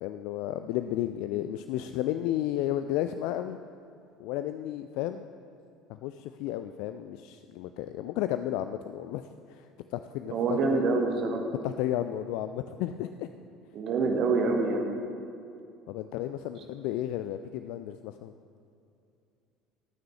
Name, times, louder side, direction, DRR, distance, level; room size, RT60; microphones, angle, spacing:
voice 1, 0.0-3.6 4.2-5.3 5.9-10.6 11.6-13.3 15.9-18.3, left 12 dB, 60° left, 10 dB, 0.3 m, -33 dB
voice 2, 10.3-11.4 13.7-14.9, right 3 dB, 50° right, 3 dB, 1.5 m, -26 dB
18.0 x 9.2 x 3.3 m, 2.5 s
figure-of-eight pair, 60°, 0 cm